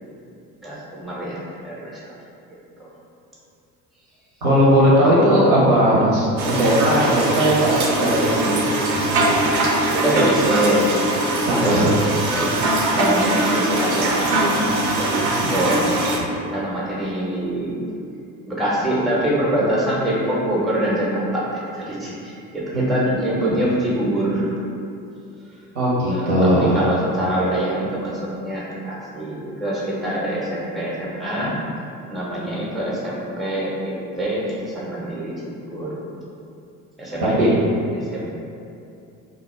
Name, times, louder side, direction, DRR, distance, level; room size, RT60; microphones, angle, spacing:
voice 1, 0.6-2.1 2.8-2.9 5.0-5.4 5.8-6.1 9.9-10.9 11.4-11.9 12.3-12.5 12.9-16.2 16.5-17.8 18.5-24.5 26.0-31.5 32.1-35.3 35.7-35.9 37.0-37.6 37.9-38.2, right 1 dB, ahead, -6 dB, 0.5 m, -25 dB
voice 2, 4.4-8.7 11.5-11.9 22.7-22.9 25.7-26.8 37.4-37.5, equal, 80° right, -7 dB, 0.8 m, -18 dB
sound 1, 6.4-16.2, right 2 dB, 45° right, 0.5 m, -21 dB
2.2 x 2.0 x 3.0 m, 2.6 s
hypercardioid pair, 60°, 43 cm